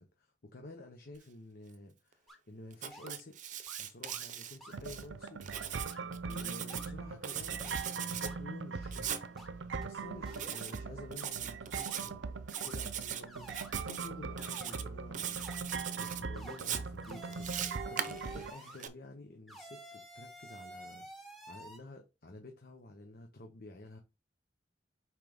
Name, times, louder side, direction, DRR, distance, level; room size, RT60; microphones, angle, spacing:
voice 1, 0.0-3.4 3.8-5.9 6.2-9.4 9.8-12.3 12.6-15.6 15.9-24.0, left 2 dB, 55° left, 1.0 m, -51 dB
sound 1, 2.3-2.4 2.9-3.2 3.7-3.8 4.1-4.3 4.6-4.8 5.2-5.3 5.6-6.0 6.3-6.9 7.6-7.8 8.2-8.4 8.8-8.9 9.4-9.5 9.8-9.9 10.3-10.6 11.2-11.3 11.8-12.0 12.5-12.8 13.3-13.7 14.4-14.7 15.4-15.6 16.3-16.6 17.0-18.8 19.5-21.8, right 1 dB, ahead, 2.1 m, -50 dB
Writing, 2.7-5.0 5.4-6.9 7.2-8.3 8.9-9.2 10.3-10.8 11.1-12.1 12.5-13.2 13.5-14.1 14.4-14.8 15.1-16.2 16.6-18.9, right 9 dB, 45° right, 0.7 m, -40 dB
sound 2, 4.7-18.5, right 4 dB, 80° right, 0.6 m, -41 dB
5.8 x 4.7 x 3.5 m
head